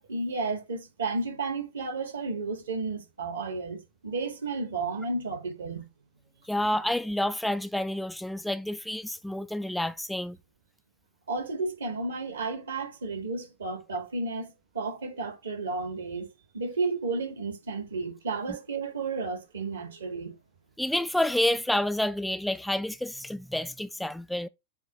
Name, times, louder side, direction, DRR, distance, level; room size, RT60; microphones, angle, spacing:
voice 1, 0.1-5.9 11.3-16.3 16.5-20.3, right 3 dB, 70° right, 1.8 m, -32 dB
voice 2, 6.5-10.4 20.8-24.5, left 1 dB, 5° left, 0.3 m, -29 dB
7.1 x 2.9 x 5.3 m
figure-of-eight pair, 90°, 0 cm